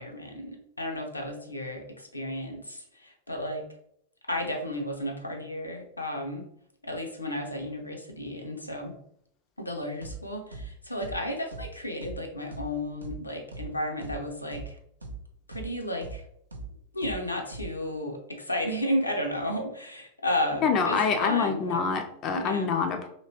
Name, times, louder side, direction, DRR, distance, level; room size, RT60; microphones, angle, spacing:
voice 1, 0.0-3.6 4.3-6.5 6.8-9.0 9.6-14.8 15.5-16.2 16.9-21.8 22.4-22.8, left 1 dB, 85° left, 2 dB, 0.5 m, -33 dB
sound 1, 10.0-10.2 10.5-10.7 11.0-11.2 11.5-11.7 12.0-12.2 12.5-12.7 13.0-13.2 13.5-13.7 14.0-14.2 14.5-14.7 15.0-15.2 15.5-15.7 16.0-16.2 16.5-16.7 17.0-17.2 17.5-17.7, right 3 dB, 80° right, 0.4 m, -39 dB
voice 2, 20.6-23.1, left 5 dB, 35° left, 5 dB, 0.4 m, -26 dB
2.9 x 2.8 x 2.8 m, 0.70 s
figure-of-eight pair, 90°, 0 cm